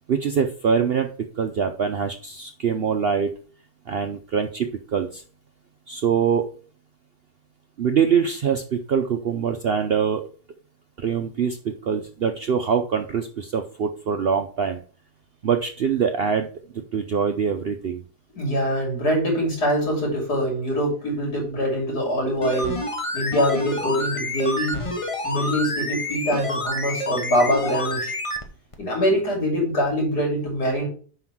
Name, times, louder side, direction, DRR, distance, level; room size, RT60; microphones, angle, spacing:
voice 1, 0.1-1.1 1.4-3.3 3.9-5.2 5.9-6.4 7.8-10.2 11.0-14.8 15.4-16.5 16.7-18.0, right 7 dB, 65° right, 6 dB, 0.6 m, -24 dB
voice 2, 18.4-22.8 23.1-24.8 25.2-28.1 28.8-30.9, equal, 85° left, 0 dB, 3.5 m, -23 dB
sound 1, 22.4-28.4 28.7-28.8, left 1 dB, 25° left, 0.9 m, -28 dB
5.8 x 5.2 x 6.0 m, 0.42 s
omnidirectional pair, 1.7 m